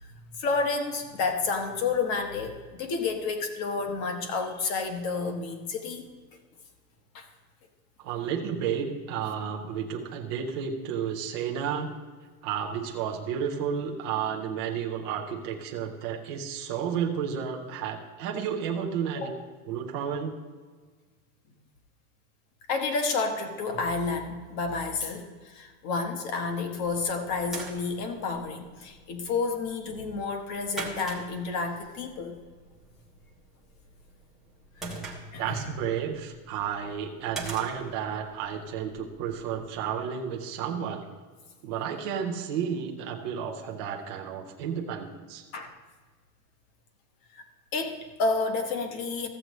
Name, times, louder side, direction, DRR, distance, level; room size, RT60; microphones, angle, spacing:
voice 1, 0.4-6.1 7.1-7.3 19.1-19.3 22.7-32.4 34.8-35.0 35.3-35.7 45.5-45.7 47.3-47.4 47.7-49.3, left 4 dB, 35° left, 5 dB, 1.1 m, -30 dB
voice 2, 8.0-11.9 12.4-19.3 19.7-20.3 35.4-41.0 41.6-45.4, right 8 dB, 20° right, -1 dB, 0.3 m, -32 dB
sound 1, 27.0-39.8, right 3 dB, ahead, 0.7 m, -45 dB
14.5 x 7.6 x 3.0 m, 1.5 s
supercardioid pair, 165°, 46 cm